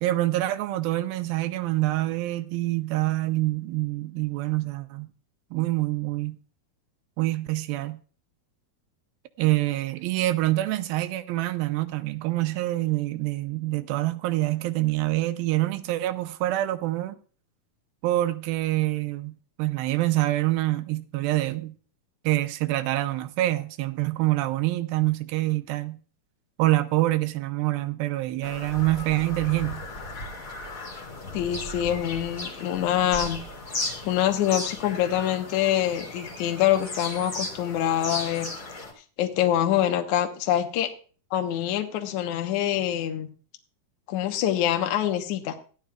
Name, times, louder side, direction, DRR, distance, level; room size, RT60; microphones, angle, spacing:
voice 1, 0.0-5.1 5.5-6.4 7.2-8.0 9.4-17.2 18.0-21.7 22.2-26.0 26.6-29.8, right 17 dB, 80° right, 2.4 m, -26 dB
Bird vocalization bird call bird song, 28.4-38.9, left 2 dB, 25° left, 2.9 m, -36 dB
voice 2, 31.3-33.4 34.0-38.5 39.2-40.9 41.3-43.3 44.1-45.6, left 11 dB, 65° left, 2.0 m, -25 dB
16.5 x 11.5 x 2.4 m
omnidirectional pair, 4.5 m